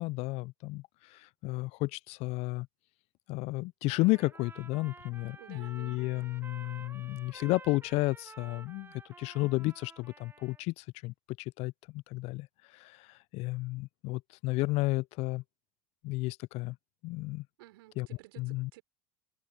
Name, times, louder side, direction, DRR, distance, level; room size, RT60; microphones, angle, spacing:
voice 1, 0.0-2.7 3.3-12.5 12.7-15.4 16.0-16.8 17.0-17.4 18.0-18.1 18.4-18.7, left 22 dB, 50° left, 0.7 m, -32 dB
Trumpet, 3.9-10.6, right 4 dB, 15° right, 3.8 m, -52 dB
voice 2, 5.4-6.4 17.6-18.8, right 19 dB, 65° right, 6.2 m, -54 dB
hypercardioid pair, 80°, 13 cm